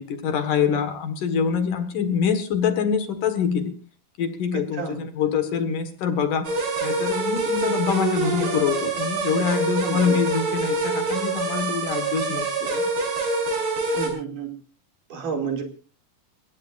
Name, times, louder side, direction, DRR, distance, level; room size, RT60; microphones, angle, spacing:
voice 1, 0.0-3.7 4.2-6.5 6.8-12.8, left 7 dB, 65° left, 8 dB, 3.0 m, -25 dB
voice 2, 4.5-5.0 9.9-10.2 13.9-14.5 15.1-15.6, right 6 dB, 60° right, 4 dB, 4.0 m, -30 dB
sound 1, 6.4-14.1, right 3 dB, 85° right, 7.9 m, -25 dB
30.0 x 16.0 x 2.6 m, 0.36 s
omnidirectional pair, 4.4 m